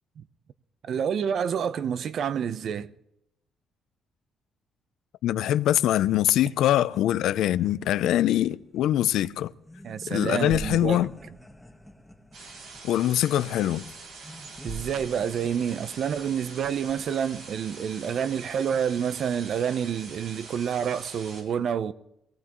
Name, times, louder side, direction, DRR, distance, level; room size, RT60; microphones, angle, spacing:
voice 1, 0.8-2.9 9.8-11.1 14.6-21.9, right 8 dB, 65° right, 0.8 m, -28 dB
voice 2, 5.2-9.5 10.1-11.1 12.8-13.9, left 12 dB, 85° left, 0.5 m, -23 dB
sound 1, 6.8-17.1, equal, 5° left, 1.2 m, -46 dB
sound 2, 12.3-21.4, right 3 dB, 80° right, 6.7 m, -44 dB
23.0 x 18.5 x 3.1 m
cardioid pair, 90°, 0 cm